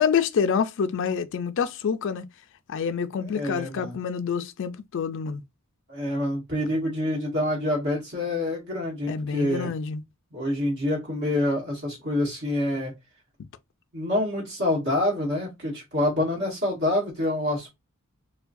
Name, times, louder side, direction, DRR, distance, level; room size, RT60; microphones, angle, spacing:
voice 1, 0.0-2.2 2.7-5.4 9.1-10.0, left 6 dB, 60° left, 0.4 m, -27 dB
voice 2, 3.2-4.0 5.9-9.7 10.3-12.9 13.9-17.7, left 1 dB, 50° right, 1.8 m, -27 dB
4.5 x 2.2 x 2.5 m
head